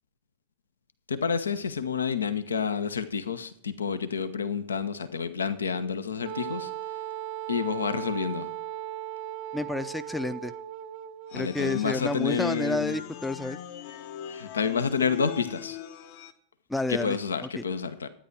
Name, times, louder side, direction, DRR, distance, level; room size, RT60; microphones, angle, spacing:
voice 1, 1.1-6.7 7.5-8.5 11.3-13.0 14.3-15.8 16.9-18.1, left 6 dB, 70° left, 11 dB, 1.0 m, -29 dB
Wind instrument woodwind instrument, 6.3-11.4, right 12 dB, 45° right, 0.5 m, -37 dB
voice 2, 9.5-10.5 11.3-13.6 16.7-17.7, left 2 dB, 5° left, 11 dB, 0.6 m, -30 dB
sound 1, 11.3-16.3, left 9 dB, 50° left, 1.1 m, -40 dB
12.5 x 10.0 x 4.7 m, 0.63 s
figure-of-eight pair, 90°, 0 cm